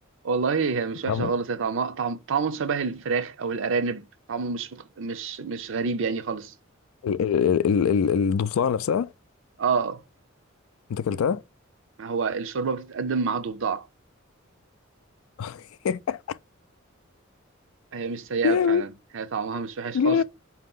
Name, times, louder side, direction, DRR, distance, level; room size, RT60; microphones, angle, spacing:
voice 1, 0.2-6.5 9.6-10.0 12.0-13.8 17.9-20.2, right 5 dB, 65° right, 0.5 m, -28 dB
voice 2, 7.0-9.1 10.9-11.4 15.4-16.2 18.4-18.8 19.9-20.2, left 7 dB, 85° left, 0.3 m, -23 dB
4.4 x 2.8 x 3.7 m
head